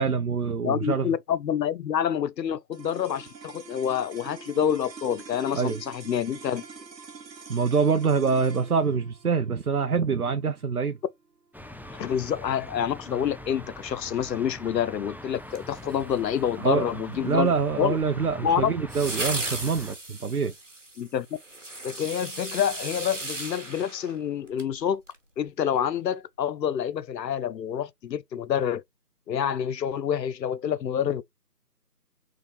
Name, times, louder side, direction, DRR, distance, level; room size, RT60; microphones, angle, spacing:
voice 1, 0.0-1.1 5.5-5.8 7.5-11.0 16.6-16.9 17.2-20.5, right 5 dB, 65° right, 0.5 m, -25 dB
voice 2, 0.6-6.6 12.0-17.5 17.8-18.0 18.4-18.7 21.0-21.3 21.8-25.0 25.4-28.8 29.3-31.2, left 9 dB, 85° left, 0.5 m, -27 dB
sound 1, 2.7-13.2, right 5 dB, 85° right, 1.0 m, -45 dB
sound 2, 11.5-20.0, left 1 dB, 5° right, 0.3 m, -43 dB
sound 3, 15.5-16.4 18.9-24.7 25.1-25.2, right 2 dB, 50° right, 1.0 m, -36 dB
3.7 x 3.1 x 3.1 m
figure-of-eight pair, 175°, 49 cm